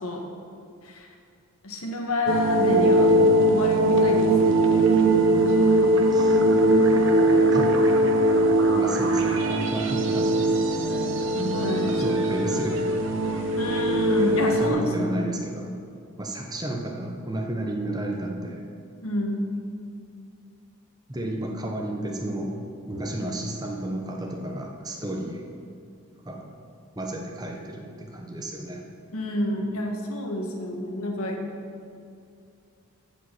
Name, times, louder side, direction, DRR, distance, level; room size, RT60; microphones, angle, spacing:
voice 1, 1.6-3.1 3.5-4.3 4.6-4.8 5.3-5.9 11.4-12.0 13.6-15.3 19.0-19.4 29.1-31.5, left 1 dB, 85° left, 1 dB, 1.5 m, -28 dB
sound 1, 2.3-14.7, right 1 dB, 60° right, 0.9 m, -21 dB
voice 2, 6.1-6.4 7.5-7.9 8.7-10.5 11.9-13.0 14.6-15.7 16.2-18.6 21.1-22.6 22.9-25.5 26.2-26.5 27.0-28.8, right 1 dB, 20° right, 1 dB, 1.0 m, -32 dB
14.5 x 5.3 x 5.8 m, 2.4 s
head